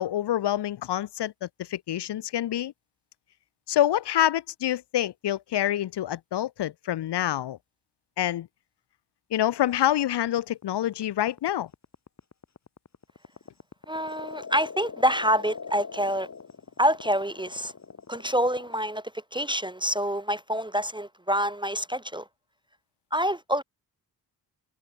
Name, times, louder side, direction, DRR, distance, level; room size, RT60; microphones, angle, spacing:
voice 1, 0.0-2.7 3.7-7.6 8.2-8.5 9.3-11.7, left 12 dB, 80° left, 0.8 m, -27 dB
sound 1, 9.8-18.8, left 5 dB, 40° left, 6.0 m, -42 dB
voice 2, 13.9-16.3 16.8-17.7 18.1-22.3 23.1-23.6, equal, 15° right, 0.4 m, -27 dB
wide cardioid pair, 145°, 40 cm